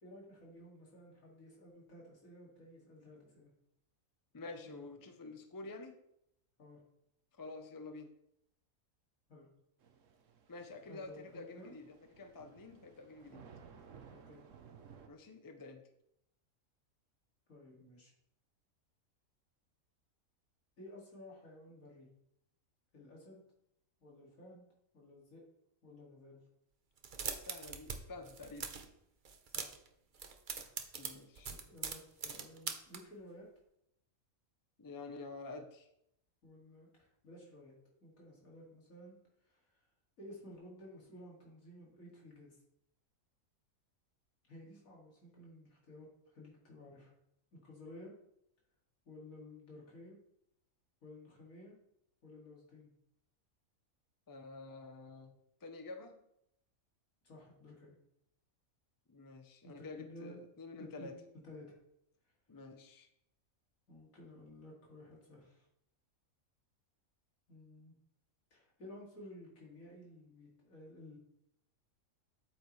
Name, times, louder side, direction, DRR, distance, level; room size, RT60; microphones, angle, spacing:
voice 1, 0.0-3.5 4.6-5.2 6.6-6.8 9.3-9.5 10.9-11.7 14.3-14.4 17.5-18.1 20.8-22.1 22.9-23.4 24.0-24.6 24.9-25.4 25.8-26.4 29.5-29.8 31.5-33.5 36.4-39.9 40.2-42.6 44.5-47.1 47.5-48.1 49.0-50.2 51.0-51.7 52.2-52.9 57.2-57.9 59.6-60.4 60.8-61.8 63.9-65.7 67.5-67.9 68.5-71.2, left 1 dB, 75° left, -3 dB, 2.8 m, -54 dB
voice 2, 4.3-6.0 7.3-8.1 10.5-13.4 15.0-15.8 27.4-28.7 31.0-31.5 34.8-35.9 54.3-55.3 55.6-56.2 59.1-61.1 62.5-63.1, left 3 dB, 20° left, 6 dB, 0.5 m, -49 dB
Thunder / Rain, 9.8-15.1, right 6 dB, 65° right, 1.2 m, -58 dB
sound 1, 27.0-28.0 28.2-28.9 29.2-29.9 30.1-33.0, right 6 dB, 45° right, 0.8 m, -41 dB
8.5 x 7.9 x 3.2 m, 0.77 s
omnidirectional pair, 1.4 m